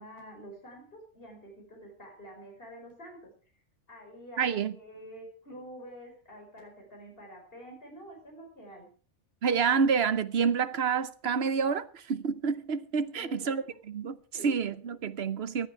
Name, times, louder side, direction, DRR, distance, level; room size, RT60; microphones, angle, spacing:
voice 1, 0.0-3.3 3.9-8.9 13.1-13.6 14.3-14.6, right 1 dB, 50° left, 5.1 m, -47 dB
voice 2, 4.4-4.7 9.4-13.6 13.9-14.2 14.4-15.7, right 6 dB, 60° right, 1.1 m, -28 dB
18.5 x 11.5 x 4.7 m
omnidirectional pair, 1.2 m